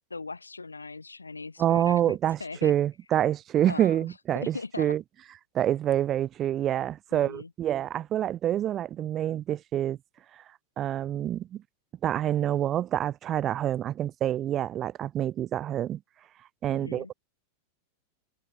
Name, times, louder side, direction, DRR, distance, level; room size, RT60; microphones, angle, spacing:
voice 1, 0.1-2.7 3.7-4.0 4.3-4.9 7.1-7.5 16.7-17.1, left 3 dB, 80° left, 2.4 m, -39 dB
voice 2, 1.6-5.0 5.5-10.0 10.8-11.6 12.0-16.0 16.6-17.1, right 11 dB, 30° right, 1.2 m, -27 dB
figure-of-eight pair, 90°, 0 cm